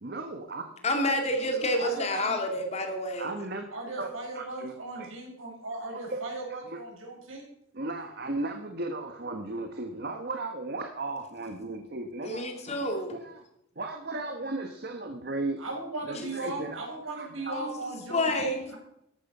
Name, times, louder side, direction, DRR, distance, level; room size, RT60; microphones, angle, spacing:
voice 1, 0.0-0.8 2.6-2.7 3.2-3.7 4.0-4.1 4.3-5.1 6.1-6.4 6.7-6.8 7.7-12.4 12.8-13.4 13.8-15.6 16.0-16.8 17.1-17.6, right 2 dB, 50° right, 5 dB, 1.2 m, -36 dB
voice 2, 0.8-3.3 12.2-13.1 17.5-18.7, left 1 dB, 35° left, 4 dB, 2.4 m, -29 dB
voice 3, 1.8-2.4 3.7-7.5 15.6-18.8, right 2 dB, 85° right, 0 dB, 5.9 m, -37 dB
14.0 x 11.5 x 5.5 m, 0.77 s
head